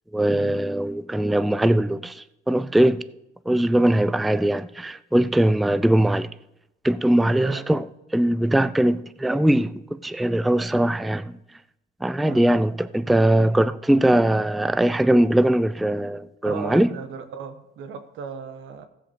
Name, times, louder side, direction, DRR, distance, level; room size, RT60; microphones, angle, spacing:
voice 1, 0.1-3.0 3.5-6.3 6.8-7.8 8.1-11.4 12.0-16.9, right 1 dB, ahead, 0.4 m, -21 dB
voice 2, 7.3-7.7 12.2-12.4 16.4-18.9, right 6 dB, 85° right, 1.2 m, -36 dB
15.0 x 5.1 x 6.6 m
cardioid pair, 90°, 20 cm